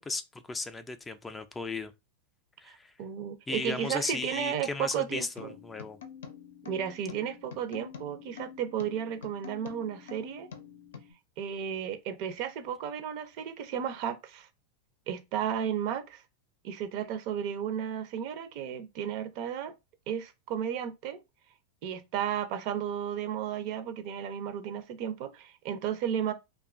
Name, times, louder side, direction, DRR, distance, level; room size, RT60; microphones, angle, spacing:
voice 1, 0.1-1.9 2.6-2.9 3.5-6.0, left 3 dB, 15° left, 0.3 m, -36 dB
voice 2, 2.6-5.6 6.6-10.5 11.4-14.5 15.1-16.2 16.6-19.7 20.1-21.2 21.8-26.3, right 9 dB, 55° right, 0.5 m, -33 dB
sound 1, 5.4-11.1, left 7 dB, 85° left, 0.5 m, -47 dB
2.6 x 2.2 x 2.5 m
hypercardioid pair, 115°, 0 cm